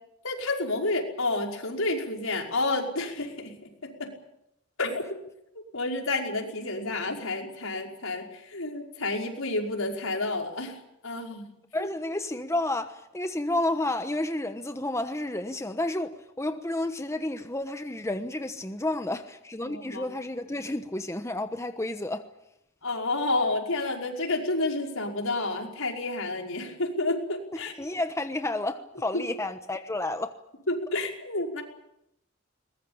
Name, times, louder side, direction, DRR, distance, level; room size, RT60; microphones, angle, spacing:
voice 1, 0.2-3.5 3.8-4.1 4.8-5.0 5.7-10.7 11.0-11.5 11.8-11.9 19.6-20.1 22.8-27.7 29.1-29.2 30.7-31.6, left 2 dB, 80° left, 5.4 m, -30 dB
voice 2, 11.7-22.2 27.8-30.3, left 1 dB, 15° left, 1.1 m, -31 dB
22.5 x 21.0 x 8.7 m
head